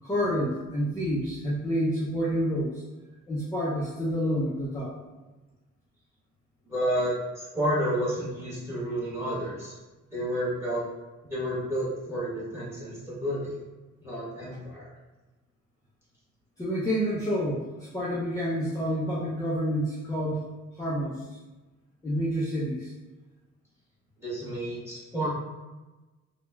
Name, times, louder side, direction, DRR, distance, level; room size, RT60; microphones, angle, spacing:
voice 1, 0.0-2.8 3.3-5.0 16.6-20.4 20.7-21.4 22.0-22.9, equal, 10° left, -6 dB, 0.5 m, -28 dB
voice 2, 6.6-7.1 7.5-9.8 10.1-10.8 11.3-13.5 14.0-14.9 24.2-25.3, equal, 10° right, -9 dB, 1.4 m, -30 dB
2.8 x 2.1 x 2.2 m, 1.1 s
cardioid pair, 90°, 30 cm